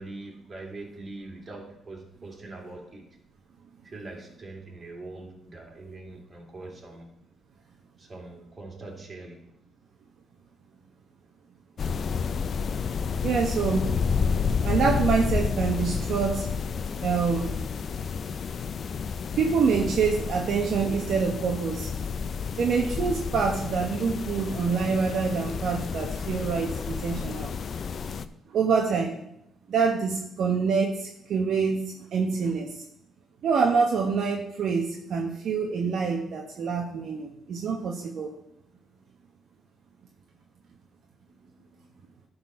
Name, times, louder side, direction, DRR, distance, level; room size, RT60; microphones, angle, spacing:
voice 1, 0.0-3.2 3.8-7.2 8.0-9.5 41.3-41.9, right 2 dB, 35° right, -1 dB, 2.8 m, -43 dB
sound 1, 11.8-28.2, left 6 dB, 50° left, 0.5 m, -30 dB
voice 2, 13.2-13.9 14.6-16.5 17.0-17.6 19.4-22.1 22.6-27.5 28.5-29.2 29.7-32.8 33.4-38.3, right 5 dB, 65° right, 1 dB, 1.1 m, -26 dB
11.5 x 4.1 x 5.7 m, 0.78 s
cardioid pair, 90°, 0 cm